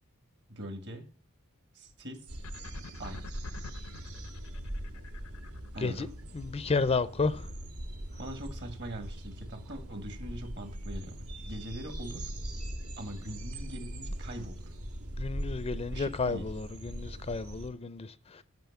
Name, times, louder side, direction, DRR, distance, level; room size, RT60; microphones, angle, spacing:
voice 1, 0.5-1.1 1.7-2.3 3.0-3.2 5.7-6.1 8.2-12.3 13.0-14.7 15.9-16.5, equal, 55° right, 1.9 m, -42 dB
sound 1, 2.3-17.7, right 1 dB, 75° right, 1.5 m, -41 dB
sound 2, 2.4-5.9, left 4 dB, 85° left, 0.7 m, -46 dB
voice 2, 6.3-7.5 15.2-18.4, left 4 dB, 25° left, 0.4 m, -32 dB
9.2 x 6.0 x 7.1 m
head